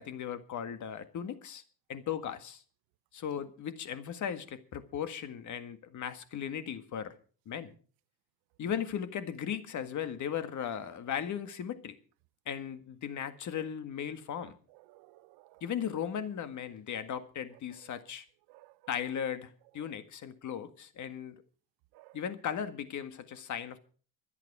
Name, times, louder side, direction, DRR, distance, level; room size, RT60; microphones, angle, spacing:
voice 1, 0.0-1.6 1.9-2.6 3.1-7.1 7.5-7.7 8.6-11.9 12.5-14.6 15.6-18.2 18.9-21.4 22.1-23.8, left 8 dB, 50° left, 1.8 m, -37 dB
voice 2, 14.4-15.6 18.5-18.9 19.8-19.9 21.9-22.2, right 19 dB, 85° right, 0.8 m, -58 dB
24.5 x 8.3 x 4.8 m
cardioid pair, 120°, 37 cm